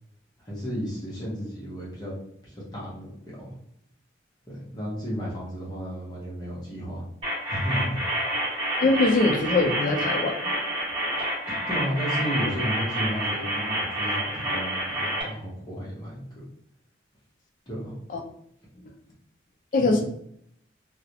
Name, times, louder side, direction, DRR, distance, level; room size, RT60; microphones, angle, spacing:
voice 1, 0.4-2.1 2.4-3.5 4.5-7.1 7.5-8.0 11.7-16.4 17.7-18.0 19.8-20.0, equal, 20° left, -6 dB, 0.7 m, -33 dB
sound 1, 7.2-15.2, right 1 dB, 30° right, 1.0 m, -28 dB
voice 2, 8.8-10.4 18.1-18.2 19.7-20.0, left 2 dB, 45° left, 3 dB, 0.4 m, -22 dB
2.3 x 2.0 x 2.7 m, 0.70 s
head